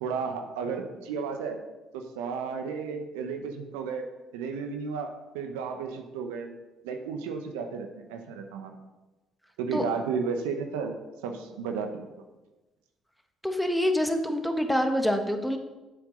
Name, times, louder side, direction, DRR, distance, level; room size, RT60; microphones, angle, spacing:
voice 1, 0.0-1.6 1.9-4.0 4.3-6.5 6.8-8.8 9.6-10.9 11.2-12.1, right 5 dB, 90° right, 5 dB, 0.9 m, -33 dB
voice 2, 13.4-15.6, equal, ahead, 5 dB, 1.3 m, -26 dB
8.0 x 7.3 x 5.3 m, 1.1 s
supercardioid pair, 65°, 0 cm